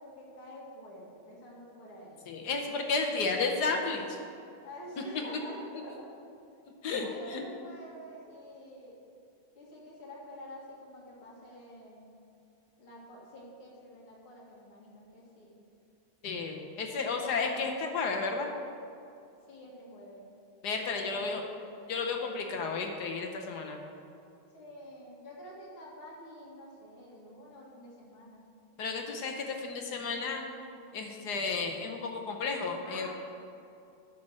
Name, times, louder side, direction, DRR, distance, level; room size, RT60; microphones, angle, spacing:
voice 1, 0.0-2.3 4.6-6.1 6.9-9.0 9.6-12.1 12.8-15.6 19.5-20.3 21.1-21.8 24.5-28.4 32.8-33.1, equal, 90° left, -4 dB, 2.8 m, -48 dB
voice 2, 2.3-4.2 6.8-7.5 16.2-18.5 20.6-21.4 21.9-23.8 28.8-30.4 30.9-33.1, left 4 dB, 60° left, 2 dB, 1.2 m, -32 dB
10.5 x 6.1 x 6.2 m, 2.6 s
omnidirectional pair, 2.3 m